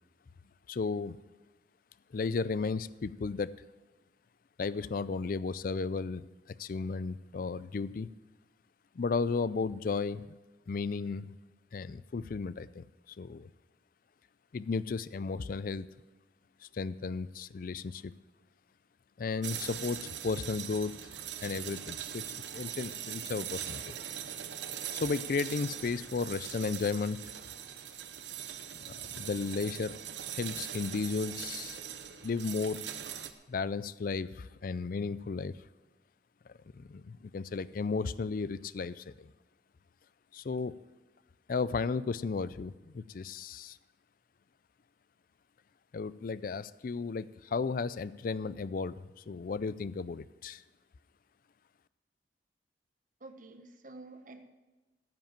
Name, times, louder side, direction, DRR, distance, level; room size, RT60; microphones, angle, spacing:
voice 1, 0.7-1.2 2.1-3.5 4.6-8.1 9.0-10.3 10.7-11.4 11.7-13.5 14.5-15.9 16.7-18.1 19.2-20.9 21.4-22.3 22.5-24.0 24.9-27.2 28.9-29.9 30.3-31.8 32.2-32.8 33.5-35.5 36.7-39.3 40.3-40.7 41.5-43.8 45.9-50.6, left 4 dB, 50° left, 17 dB, 0.4 m, -34 dB
sound 1, 19.4-33.3, right 10 dB, 80° right, 0.8 m, -41 dB
voice 2, 53.2-54.4, right 2 dB, 45° right, 8 dB, 1.0 m, -49 dB
14.5 x 5.3 x 8.9 m, 1.1 s
head